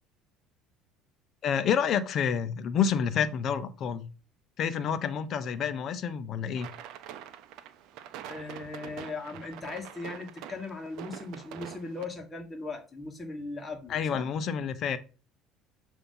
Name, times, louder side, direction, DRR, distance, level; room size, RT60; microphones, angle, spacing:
voice 1, 1.4-4.1 4.6-6.7 13.9-15.0, left 7 dB, 50° left, 0.7 m, -28 dB
sound 1, 6.6-12.1, right 10 dB, 70° right, 0.6 m, -45 dB
voice 2, 8.3-14.3, left 3 dB, 20° left, 1.4 m, -38 dB
6.9 x 2.8 x 5.4 m
supercardioid pair, 110°, 0 cm